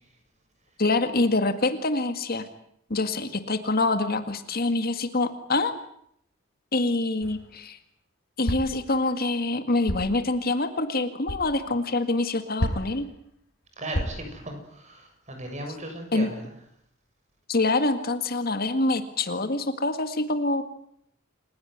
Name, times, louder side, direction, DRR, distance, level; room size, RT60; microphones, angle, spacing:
voice 1, 0.8-2.5 2.9-5.7 6.7-7.8 8.4-13.1 16.1-16.3 17.5-20.6, left 2 dB, 45° left, 8 dB, 2.0 m, -25 dB
sound 1, 7.2-7.6 8.4-8.8 9.9-10.2 11.3-11.5 12.6-13.1 13.9-14.4, equal, 65° left, 5.1 m, -30 dB
voice 2, 13.8-16.5, right 1 dB, 35° right, 5 dB, 7.0 m, -37 dB
29.0 x 16.5 x 9.5 m, 0.71 s
head